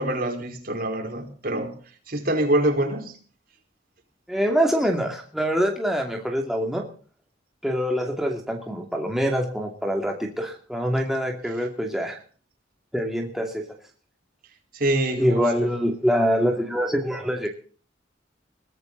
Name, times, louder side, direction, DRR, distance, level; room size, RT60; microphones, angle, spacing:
voice 1, 0.0-1.8 2.1-3.2 11.6-11.7 14.7-15.7, right 1 dB, 55° right, 3 dB, 4.8 m, -25 dB
voice 2, 4.3-6.8 7.6-12.2 12.9-13.6 15.2-17.5, equal, ahead, 1 dB, 2.6 m, -24 dB
22.5 x 15.5 x 4.0 m, 0.41 s
head